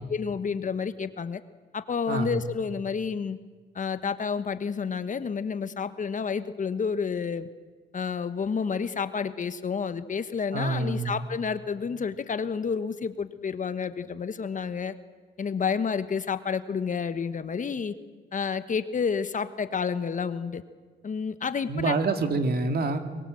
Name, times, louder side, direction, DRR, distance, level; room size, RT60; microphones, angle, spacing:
voice 1, 0.1-1.4 1.7-3.4 3.7-7.5 7.9-14.9 15.4-17.9 18.3-20.6 21.0-21.9, left 6 dB, 40° left, 12 dB, 1.2 m, -30 dB
voice 2, 2.1-2.4 10.5-11.1 21.7-23.0, right 3 dB, 50° right, 7 dB, 2.4 m, -26 dB
24.0 x 22.0 x 7.7 m, 1.5 s
cardioid pair, 90°, 20 cm